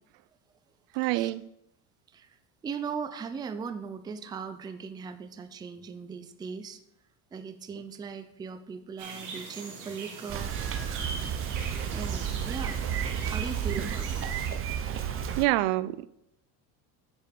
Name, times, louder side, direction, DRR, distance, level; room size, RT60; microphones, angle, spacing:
voice 1, 0.9-1.4 15.4-16.1, right 17 dB, 75° right, 0.5 m, -26 dB
voice 2, 2.1-6.8 7.3-10.5 11.9-12.8 13.2-14.2, right 6 dB, 10° right, 0.4 m, -39 dB
sound 1, 9.0-14.5, right 4 dB, 45° right, 2.1 m, -42 dB
Bicycle, 10.3-15.4, right 8 dB, 30° right, 0.8 m, -32 dB
10.5 x 5.0 x 5.1 m
cardioid pair, 130°, 43 cm